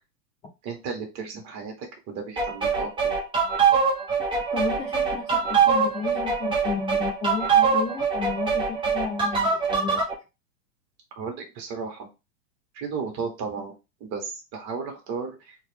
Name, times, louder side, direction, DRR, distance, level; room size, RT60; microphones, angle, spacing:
voice 1, 0.6-3.2 11.2-12.1 12.7-13.7 14.0-15.6, right 5 dB, 35° right, 3 dB, 1.5 m, -34 dB
sound 1, 2.4-10.1, right 5 dB, 10° right, 0.8 m, -23 dB
voice 2, 4.5-10.0, left 5 dB, 10° left, -2 dB, 0.4 m, -33 dB
3.0 x 2.9 x 3.4 m, 0.27 s
hypercardioid pair, 120°, 48 cm